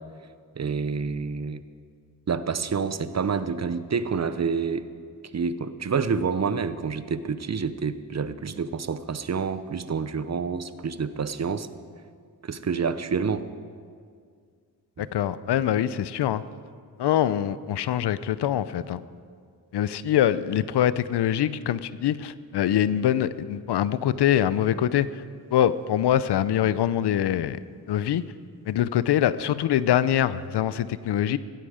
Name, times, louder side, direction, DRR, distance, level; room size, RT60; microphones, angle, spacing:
voice 1, 0.6-1.6 2.3-4.9 5.3-11.7 12.4-13.5 15.0-15.1, right 5 dB, 40° right, 13 dB, 0.8 m, -28 dB
voice 2, 15.0-16.4 17.0-19.0 19.7-25.2 25.5-27.6 27.9-28.2 28.7-31.4, left 11 dB, 80° left, 16 dB, 0.6 m, -24 dB
16.0 x 15.0 x 5.0 m, 2.1 s
cardioid pair, 80°, 40 cm